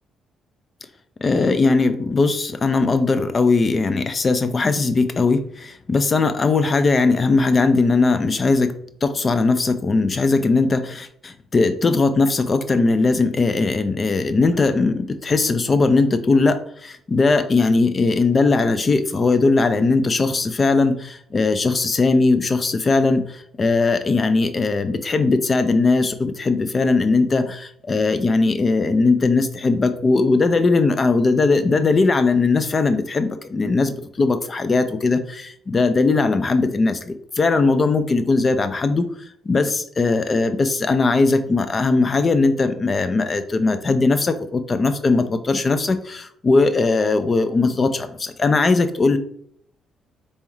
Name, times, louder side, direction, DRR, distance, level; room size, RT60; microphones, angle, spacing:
voice 1, 1.2-8.7 9.0-39.1 39.5-49.2, left 3 dB, 35° left, 10 dB, 0.5 m, -19 dB
4.2 x 3.4 x 3.1 m, 0.66 s
cardioid pair, 90°, 0 cm